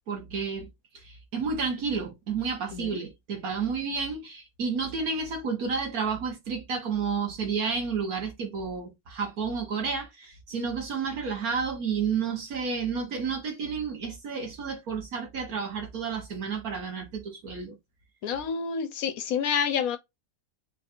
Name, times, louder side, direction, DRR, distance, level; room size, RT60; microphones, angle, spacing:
voice 1, 0.1-0.7 0.9-17.7, right 5 dB, 85° right, 1.7 m, -31 dB
voice 2, 18.2-20.0, left 7 dB, 80° left, 1.2 m, -28 dB
4.0 x 2.4 x 4.3 m
omnidirectional pair, 1.5 m